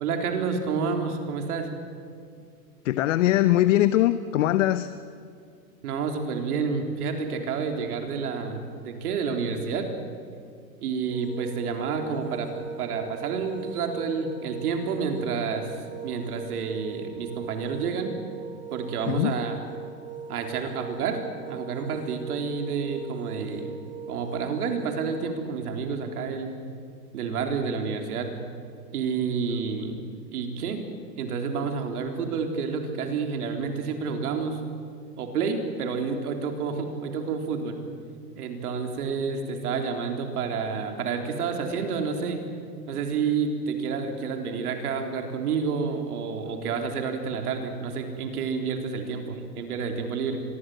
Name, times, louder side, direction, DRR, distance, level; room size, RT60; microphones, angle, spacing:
voice 1, 0.0-1.7 5.8-9.9 10.8-12.5 12.8-15.8 16.0-18.1 18.7-19.6 20.3-21.2 21.5-23.7 24.1-26.6 27.1-28.3 28.9-30.0 30.3-30.8 31.2-34.6 35.2-37.8 38.4-42.4 42.9-50.4, right 5 dB, 60° right, 4 dB, 3.9 m, -29 dB
voice 2, 2.8-4.9 19.1-19.3, left 14 dB, 50° left, 13 dB, 1.0 m, -21 dB
sound 1, 11.1-25.3, right 6 dB, 15° right, 2.4 m, -40 dB
25.5 x 20.5 x 7.8 m, 2.3 s
hypercardioid pair, 140°, 50 cm